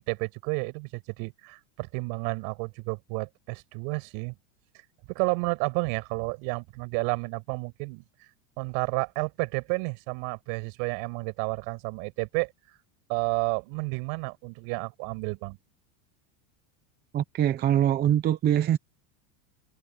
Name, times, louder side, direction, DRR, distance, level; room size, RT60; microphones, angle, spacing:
voice 1, 0.0-4.4 5.1-8.0 8.6-12.5 13.1-15.6, right 33 dB, 55° right, 6.1 m, -31 dB
voice 2, 17.1-18.8, right 11 dB, 25° right, 0.8 m, -23 dB
supercardioid pair, 160°, 40 cm